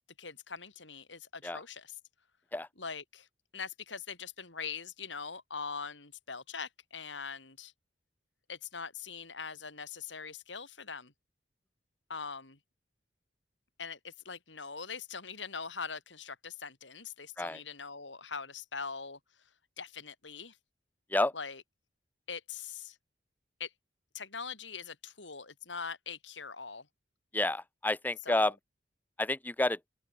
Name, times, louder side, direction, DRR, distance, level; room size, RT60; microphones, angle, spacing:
voice 1, 0.2-1.9 2.8-3.3 3.5-7.7 8.5-11.1 12.1-12.6 13.8-19.2 19.8-20.6 21.3-21.6 22.3-23.0 23.6-23.7 24.1-26.9 28.2-28.5, left 5 dB, 85° left, 6.2 m, -42 dB
voice 2, 27.3-28.5 29.2-29.8, left 2 dB, 10° left, 0.5 m, -29 dB
open air
head